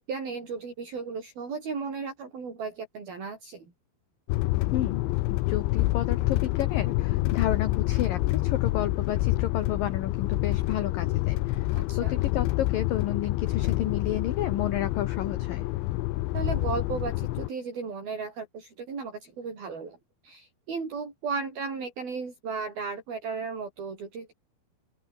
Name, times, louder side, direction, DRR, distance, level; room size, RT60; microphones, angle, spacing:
voice 1, 0.0-3.7 11.8-12.2 16.3-20.0 20.2-24.3, right 5 dB, 50° right, 8.2 m, -35 dB
sound 1, 4.3-17.5, left 18 dB, 80° left, 3.1 m, -27 dB
voice 2, 4.7-5.0 5.5-11.7 12.0-15.7, left 11 dB, 60° left, 2.6 m, -31 dB
open air
omnidirectional pair, 5.6 m